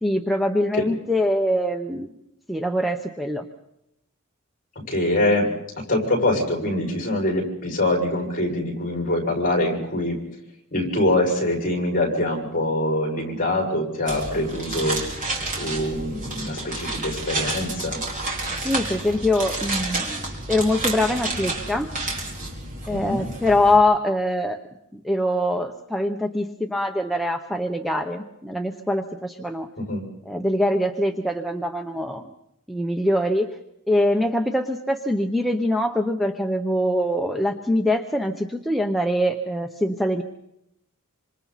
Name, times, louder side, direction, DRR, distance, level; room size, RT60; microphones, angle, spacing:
voice 1, 0.0-2.1 2.5-3.4 18.6-21.9 22.9-24.6 24.9-29.7 30.3-32.3 32.7-33.5 33.9-40.2, left 1 dB, ahead, 2 dB, 0.9 m, -23 dB
voice 2, 4.7-5.5 5.8-10.2 10.7-15.0 15.6-18.0 22.9-23.2 29.8-30.0, left 1 dB, 40° left, 0 dB, 6.3 m, -24 dB
sound 1, 14.1-23.8, right 2 dB, 35° right, 4.3 m, -30 dB
27.0 x 26.0 x 4.2 m, 0.81 s
head